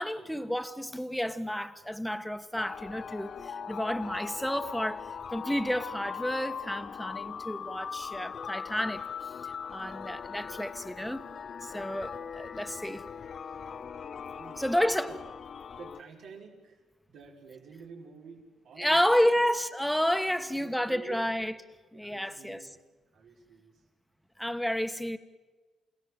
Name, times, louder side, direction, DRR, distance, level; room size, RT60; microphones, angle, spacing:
voice 1, 0.0-11.3 11.6-13.0 14.6-15.1 18.8-21.5 21.9-22.7 24.4-25.2, equal, ahead, 1.3 m, -30 dB
sound 1, 2.5-16.0, left 7 dB, 50° left, 0.7 m, -40 dB
voice 2, 14.3-15.2 15.8-16.8 17.1-19.4 20.3-21.3 21.9-22.7 23.1-23.8, right 5 dB, 75° right, 5.2 m, -49 dB
29.0 x 16.5 x 7.7 m
cardioid pair, 90°, 0 cm